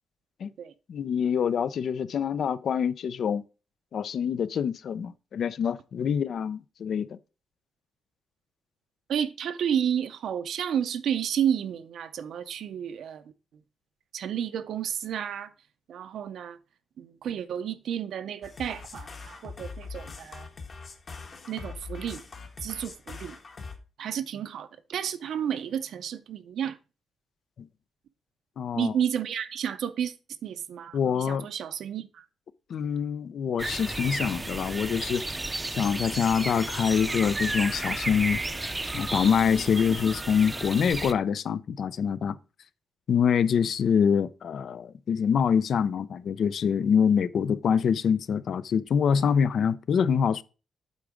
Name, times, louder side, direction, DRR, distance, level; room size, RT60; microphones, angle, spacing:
voice 1, 0.9-3.4 3.9-7.2 27.6-27.7 28.6-28.9 30.9-31.5 32.7-35.2 35.7-38.4 38.9-42.4 43.1-50.4, left 7 dB, 65° left, 0.4 m, -25 dB
voice 2, 9.1-13.2 14.1-15.5 15.9-16.6 17.0-20.5 21.5-22.2 22.6-23.4 24.0-26.8 28.7-30.1 30.4-32.2, right 9 dB, 75° right, 0.6 m, -31 dB
sound 1, 18.4-23.8, left 4 dB, 40° left, 1.3 m, -42 dB
sound 2, 33.6-41.1, right 2 dB, 15° right, 0.5 m, -33 dB
8.3 x 3.8 x 4.8 m
cardioid pair, 110°, 0 cm